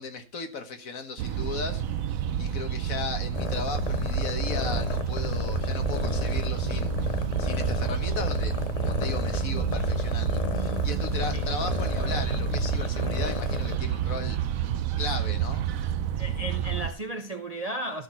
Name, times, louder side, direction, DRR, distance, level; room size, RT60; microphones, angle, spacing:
voice 1, 0.0-1.8 2.4-8.5 8.8-14.4 15.0-15.7, left 4 dB, 75° left, 1.8 m, -36 dB
sound 1, 1.2-16.9, right 11 dB, 75° right, 1.1 m, -29 dB
sound 2, 3.3-13.8, left 7 dB, 45° left, 0.5 m, -32 dB
voice 2, 16.2-18.0, right 1 dB, 35° right, 0.7 m, -34 dB
13.0 x 5.9 x 4.3 m
omnidirectional pair, 1.5 m